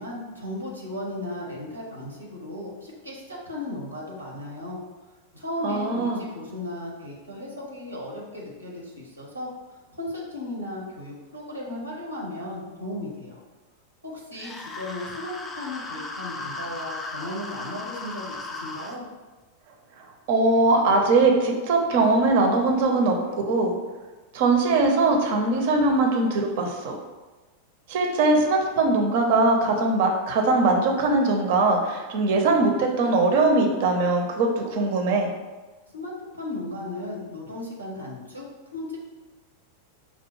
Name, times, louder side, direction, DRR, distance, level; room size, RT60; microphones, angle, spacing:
voice 1, 0.0-4.8 5.3-9.5 9.9-13.4 14.0-19.0 35.9-38.4 38.7-39.0, left 1 dB, 85° right, -3 dB, 0.9 m, -35 dB
voice 2, 5.6-6.2 20.3-23.7 24.3-27.0 27.9-35.3, right 3 dB, 50° right, 2 dB, 0.6 m, -21 dB
sound 1, 14.4-19.0, left 2 dB, 15° left, 0.4 m, -36 dB
5.2 x 2.1 x 3.1 m, 1.3 s
figure-of-eight pair, 90°, 0 cm